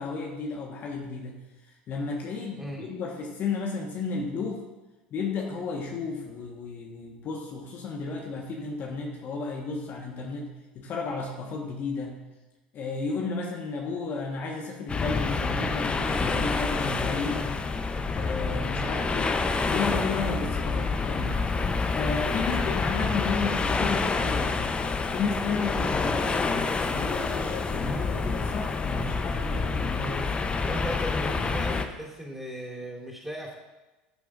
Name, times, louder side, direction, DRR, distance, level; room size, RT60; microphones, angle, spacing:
voice 1, 0.0-4.6 5.1-12.2 12.7-17.5 18.1-19.4 19.7-21.4 21.9-24.8 25.1-30.5, left 4 dB, 45° left, -1 dB, 1.4 m, -33 dB
voice 2, 2.4-2.9 22.4-22.6 30.6-33.6, equal, 5° right, -4 dB, 3.4 m, -37 dB
sound 1, 14.9-31.9, left 4 dB, 20° left, 0.8 m, -28 dB
14.0 x 7.6 x 2.6 m, 1.1 s
hypercardioid pair, 75°, 5 cm